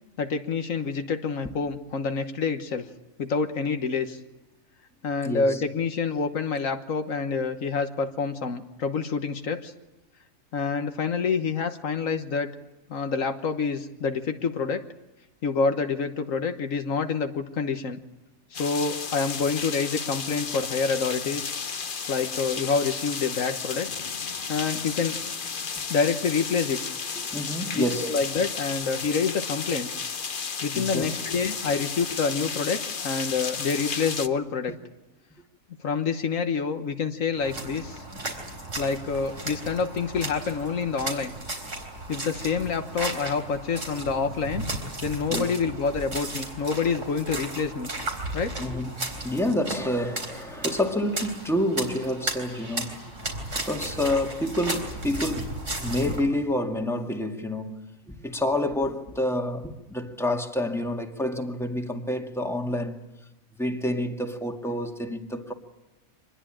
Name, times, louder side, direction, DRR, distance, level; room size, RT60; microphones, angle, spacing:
voice 1, 0.2-2.9 3.2-4.2 5.0-9.7 10.5-12.5 12.9-14.8 15.4-18.0 18.5-21.5 22.1-23.9 24.5-25.2 25.9-26.8 27.7-29.9 30.6-34.7 35.8-38.0 38.8-41.3 42.1-44.7 45.0-47.9 48.3-48.6, left 5 dB, 75° left, 1.6 m, -27 dB
voice 2, 5.2-5.6 27.3-28.2 30.7-31.1 45.3-45.5 48.6-53.0 53.6-57.8 58.2-63.1 63.6-65.5, left 1 dB, ahead, 2.0 m, -28 dB
sound 1, 18.5-34.3, left 5 dB, 45° left, 1.1 m, -33 dB
sound 2, 37.4-56.2, right 2 dB, 65° right, 4.3 m, -35 dB
25.5 x 20.5 x 8.9 m
omnidirectional pair, 1.4 m